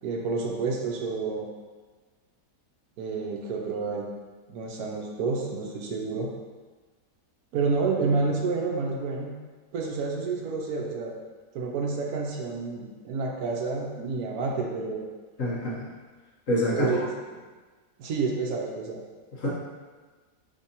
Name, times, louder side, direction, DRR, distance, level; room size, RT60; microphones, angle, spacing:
voice 1, 0.0-1.5 3.0-4.1 4.5-6.3 7.5-9.3 9.7-11.2 11.5-15.0 16.7-17.0 18.0-19.0, right 4 dB, 75° right, 0 dB, 1.1 m, -29 dB
voice 2, 15.4-15.9 16.5-17.0 19.3-19.5, left 1 dB, 60° left, -6 dB, 1.2 m, -26 dB
4.9 x 3.3 x 2.8 m, 1.4 s
omnidirectional pair, 1.7 m